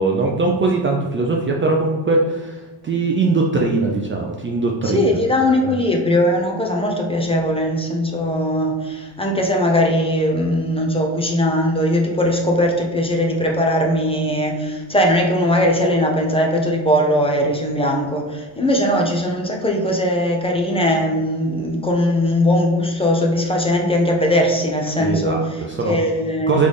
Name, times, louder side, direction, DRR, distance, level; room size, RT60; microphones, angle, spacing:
voice 1, 0.0-5.2 5.6-5.8 25.0-25.4 25.7-26.0 26.5-26.7, right 3 dB, 30° right, 0 dB, 0.4 m, -20 dB
voice 2, 4.8-26.6, left 1 dB, 10° left, 0 dB, 0.7 m, -19 dB
4.0 x 3.4 x 3.3 m, 1.3 s
cardioid pair, 100°, 46 cm